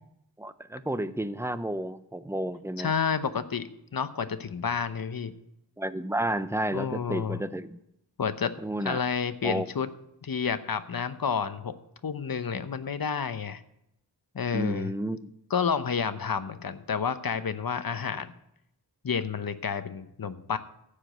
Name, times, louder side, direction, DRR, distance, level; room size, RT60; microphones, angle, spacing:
voice 1, 0.4-2.9 5.8-7.8 8.6-9.0 9.4-9.7 14.5-15.3, right 1 dB, 5° right, 13 dB, 0.6 m, -31 dB
voice 2, 2.8-5.3 6.7-7.4 8.2-8.5 8.8-9.9 10.2-11.8 12.0-13.6 14.3-14.9 15.5-18.3 19.0-20.6, left 6 dB, 55° left, 12 dB, 0.9 m, -30 dB
14.5 x 5.0 x 7.9 m, 0.81 s
wide cardioid pair, 55°, 43 cm